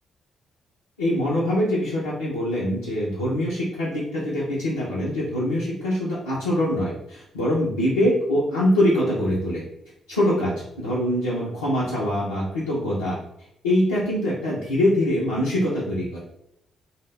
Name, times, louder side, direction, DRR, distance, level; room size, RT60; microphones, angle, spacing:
voice 1, 1.0-9.6 10.1-13.2 13.6-16.2, left 1 dB, 85° left, -9 dB, 0.4 m, -23 dB
2.1 x 2.0 x 3.2 m, 0.77 s
figure-of-eight pair, 40°, 0 cm